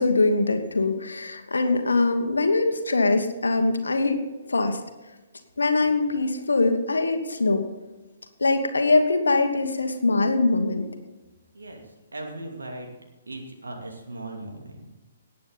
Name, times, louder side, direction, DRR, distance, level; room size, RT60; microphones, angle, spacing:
voice 1, 0.0-4.8 5.6-7.6 8.4-10.9, left 3 dB, 70° left, 7 dB, 1.3 m, -22 dB
voice 2, 11.5-12.9 13.3-14.9, right 2 dB, 70° right, 2 dB, 2.6 m, -38 dB
18.5 x 8.5 x 4.0 m, 1.2 s
figure-of-eight pair, 125°, 0 cm